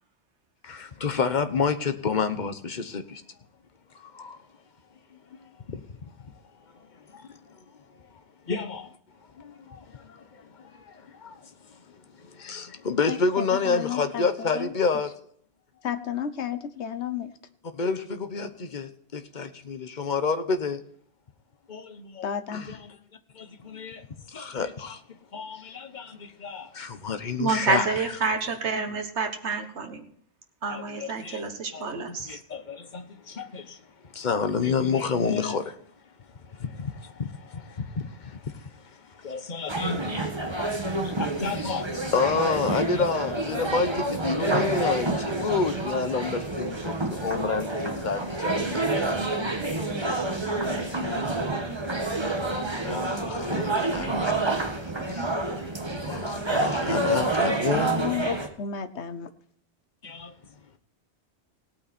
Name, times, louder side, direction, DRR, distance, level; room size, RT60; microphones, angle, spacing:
voice 1, 0.6-3.2 4.0-4.4 5.3-5.4 5.7-5.8 7.1-7.4 8.5-8.9 9.4-11.4 12.2-15.2 17.7-20.8 21.7-23.0 23.3-24.1 24.3-25.0 25.3-27.9 30.7-31.4 31.7-33.8 34.1-35.7 36.5-38.7 39.2-48.8 50.6-51.0 52.5-54.4 55.1-55.3 56.0-57.9 60.0-60.3, left 5 dB, 45° left, 1.1 m, -30 dB
voice 2, 13.1-14.7 15.8-17.3 22.2-22.6 42.8-43.0 57.7-59.3, left 8 dB, 75° left, 1.2 m, -32 dB
voice 3, 27.4-30.0 30.6-32.4, right 4 dB, 75° right, 1.7 m, -28 dB
sound 1, 39.7-58.5, right 2 dB, 25° right, 1.4 m, -28 dB
17.5 x 8.8 x 4.3 m
omnidirectional pair, 1.2 m